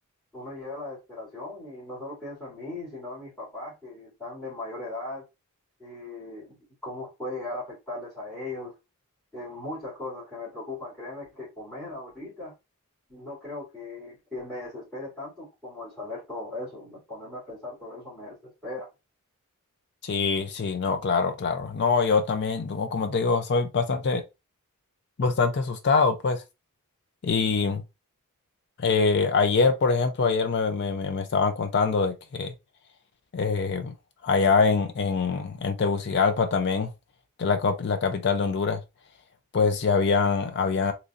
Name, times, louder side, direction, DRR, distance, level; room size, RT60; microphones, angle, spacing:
voice 1, 0.3-5.2 5.8-6.5 6.8-8.7 9.3-12.5 13.1-18.9, left 2 dB, 5° left, 2.3 m, -38 dB
voice 2, 20.0-24.2 25.2-26.4 27.2-27.8 28.8-32.5 33.3-33.9 34.2-36.9 37.4-38.8 39.5-40.9, left 4 dB, 50° left, 0.4 m, -24 dB
3.8 x 3.0 x 2.5 m
head